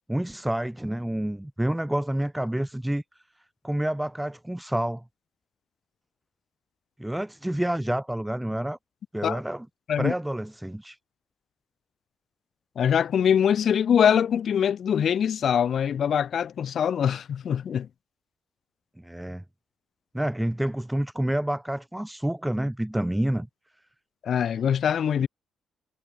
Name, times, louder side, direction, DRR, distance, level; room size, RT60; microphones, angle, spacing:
voice 1, 0.1-3.0 3.6-5.0 7.0-8.8 9.1-9.7 10.0-11.0 19.0-19.4 20.1-23.5, right 1 dB, 5° right, 0.8 m, -28 dB
voice 2, 12.8-17.9 24.2-25.3, left 8 dB, 60° left, 0.5 m, -23 dB
cardioid pair, 90°, 0 cm